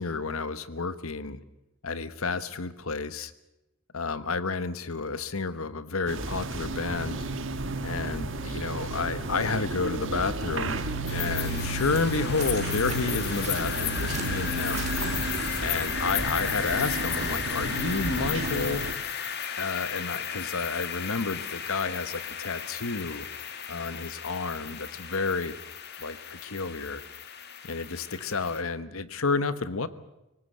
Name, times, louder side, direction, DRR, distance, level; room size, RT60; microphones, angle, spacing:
voice 1, 0.0-1.4 1.8-3.3 3.9-7.2 7.8-10.8 11.1-14.9 15.6-18.8 19.6-23.3 23.7-25.5 26.0-27.0 27.6-29.9, left 4 dB, 75° left, 14 dB, 1.2 m, -30 dB
sound 1, 6.1-18.9, right 2 dB, 60° right, 1.5 m, -33 dB
sound 2, 10.1-17.1, right 1 dB, 30° right, 3.4 m, -40 dB
sound 3, 11.1-28.6, left 8 dB, 50° left, 1.8 m, -34 dB
24.0 x 19.0 x 7.9 m, 0.92 s
head